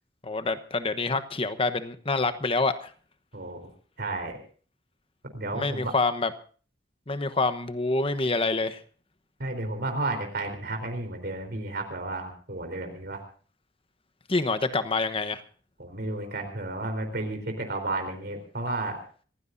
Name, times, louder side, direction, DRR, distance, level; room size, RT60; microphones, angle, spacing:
voice 1, 0.2-2.9 5.5-6.3 7.1-8.8 14.3-15.4, left 3 dB, 30° left, 10 dB, 1.1 m, -27 dB
voice 2, 4.0-4.4 5.3-5.9 9.4-13.2 15.8-19.0, right 2 dB, 60° right, 6 dB, 3.9 m, -32 dB
26.5 x 15.5 x 2.6 m, 0.41 s
head